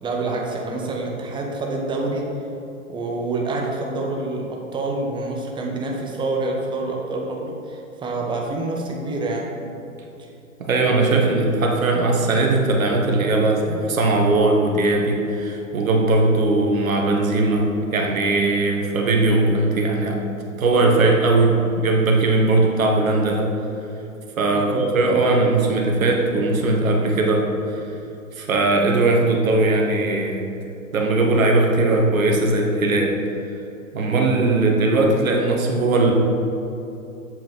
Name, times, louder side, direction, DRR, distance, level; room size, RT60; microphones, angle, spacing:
voice 1, 0.0-2.4 2.9-9.6 10.2-10.3 24.4-24.8, right 2 dB, 10° right, 0 dB, 1.0 m, -27 dB
voice 2, 10.6-20.2 20.6-23.5 24.4-27.9 28.4-30.4 30.9-33.2 33.9-36.1, right 2 dB, 75° right, 0 dB, 1.5 m, -19 dB
7.7 x 7.3 x 4.6 m, 2.8 s
hypercardioid pair, 120°, 42 cm